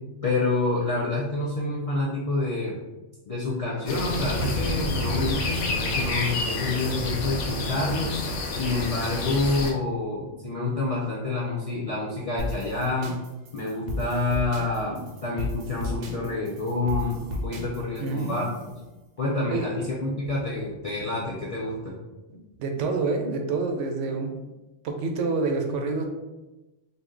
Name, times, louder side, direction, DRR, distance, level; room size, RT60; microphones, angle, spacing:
voice 1, 0.2-2.8 3.3-8.1 8.5-13.1 13.5-18.5 19.2-22.0, left 2 dB, 60° left, -5 dB, 0.3 m, -28 dB
sound 1, 3.9-9.7, left 2 dB, 90° left, 0.9 m, -28 dB
sound 2, 12.4-18.7, left 1 dB, 60° right, 0.7 m, -34 dB
voice 2, 18.0-18.5 19.5-19.7 22.6-24.3 24.8-26.0, right 3 dB, 85° right, 3 dB, 0.9 m, -27 dB
2.6 x 2.1 x 3.6 m, 1.1 s
omnidirectional pair, 1.2 m